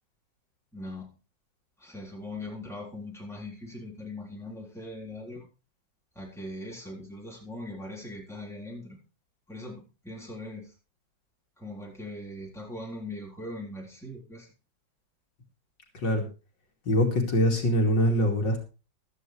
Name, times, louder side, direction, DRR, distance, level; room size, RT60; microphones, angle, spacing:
voice 1, 0.7-1.1 1.8-5.5 6.2-9.0 9.5-10.8 11.6-14.5, left 1 dB, ahead, -3 dB, 3.7 m, -40 dB
voice 2, 15.9-16.2 16.8-18.6, equal, 70° left, 2 dB, 3.1 m, -24 dB
15.0 x 12.5 x 3.3 m, 0.32 s
omnidirectional pair, 2.0 m